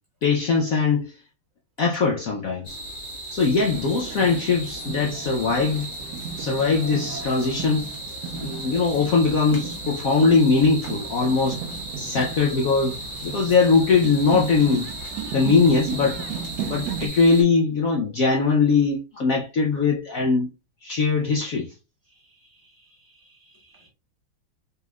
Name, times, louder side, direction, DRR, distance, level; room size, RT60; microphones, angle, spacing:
voice 1, 0.2-1.1 1.8-2.8 3.3-5.9 6.4-7.9 8.4-11.6 12.0-14.9 15.3-16.2 16.7-20.5 20.8-21.7, left 4 dB, 80° left, 0.7 m, -21 dB
sound 1, 2.6-17.4, right 1 dB, 15° left, 1.4 m, -36 dB
sound 2, 3.6-17.1, right 7 dB, 80° right, 0.9 m, -36 dB
voice 2, 22.1-23.9, right 2 dB, 10° right, 1.6 m, -59 dB
4.1 x 3.4 x 2.3 m
omnidirectional pair, 2.3 m